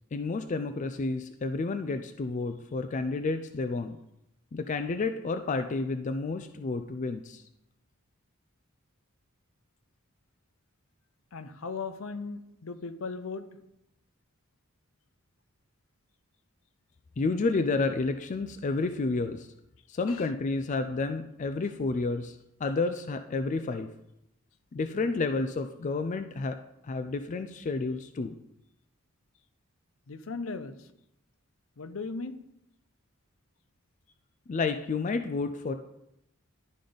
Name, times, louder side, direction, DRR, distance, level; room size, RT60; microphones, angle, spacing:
voice 1, 0.1-4.0 4.5-7.4 17.2-19.5 19.9-23.9 24.7-26.6 26.8-28.3 34.5-35.7, left 3 dB, 35° left, 8 dB, 0.3 m, -30 dB
voice 2, 11.3-13.5 20.1-20.3 30.1-30.9 31.8-32.3, left 4 dB, 70° left, 11 dB, 0.6 m, -37 dB
11.5 x 5.0 x 3.9 m, 0.83 s
head